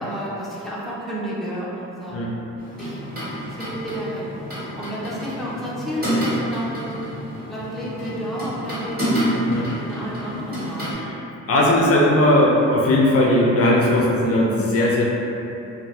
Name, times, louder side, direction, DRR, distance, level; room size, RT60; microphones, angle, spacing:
voice 1, 0.0-2.2 2.8-3.0 3.5-4.3 4.8-7.0 7.5-10.9, equal, ahead, -7 dB, 0.5 m, -31 dB
sound 1, 2.6-10.9, equal, 30° right, 1.4 m, -28 dB
voice 2, 11.5-15.0, left 1 dB, 50° left, -3 dB, 0.4 m, -18 dB
2.6 x 2.0 x 3.0 m, 3.0 s
cardioid pair, 90°, 30 cm